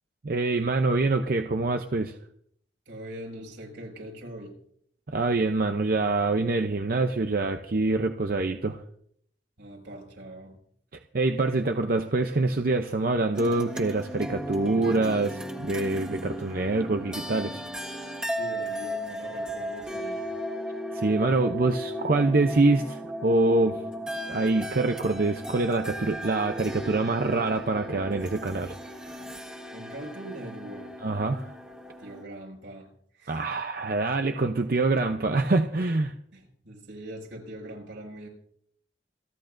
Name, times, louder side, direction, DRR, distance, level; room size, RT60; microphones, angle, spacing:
voice 1, 0.2-2.1 5.1-8.8 11.1-17.6 20.9-23.8 24.3-28.8 29.0-29.1 31.0-31.4 33.3-36.1, right 2 dB, 50° right, 0.7 m, -25 dB
voice 2, 2.9-4.6 9.6-10.6 18.3-20.3 29.7-30.9 32.0-32.9 33.2-33.5 36.3-38.3, right 1 dB, 80° right, 6.1 m, -42 dB
sound 1, 13.3-32.2, equal, 5° right, 1.4 m, -36 dB
28.0 x 11.0 x 2.6 m
head